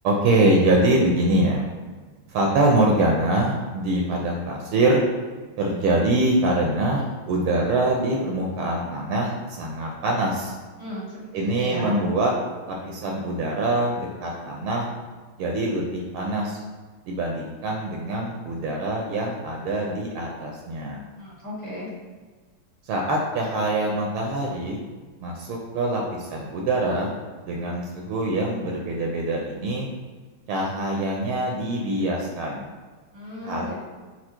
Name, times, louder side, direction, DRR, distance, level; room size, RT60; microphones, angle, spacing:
voice 1, 0.0-1.7 2.3-5.0 5.6-10.5 11.3-12.3 12.7-14.9 15.4-16.6 17.0-21.0 22.8-24.8 25.2-27.1 27.4-29.9 30.5-32.7 33.4-33.7, right 2 dB, 80° right, -1 dB, 1.4 m, -24 dB
voice 2, 10.8-12.0 21.2-21.9 33.1-33.7, left 1 dB, 25° right, -8 dB, 0.9 m, -34 dB
4.5 x 2.3 x 4.3 m, 1.4 s
omnidirectional pair, 2.4 m